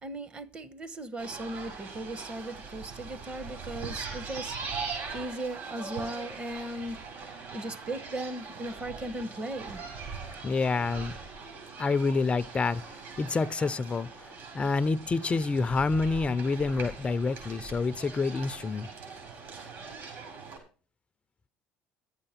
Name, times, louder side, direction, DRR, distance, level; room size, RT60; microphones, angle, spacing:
voice 1, 0.0-4.8 5.1-9.8, right 1 dB, 30° right, 1.1 m, -38 dB
sound 1, 1.2-20.6, right 4 dB, 60° right, 6.6 m, -41 dB
voice 2, 10.4-11.1 11.8-18.9, left 4 dB, 25° left, 0.5 m, -28 dB
12.0 x 8.9 x 5.7 m
supercardioid pair, 95°, 4 cm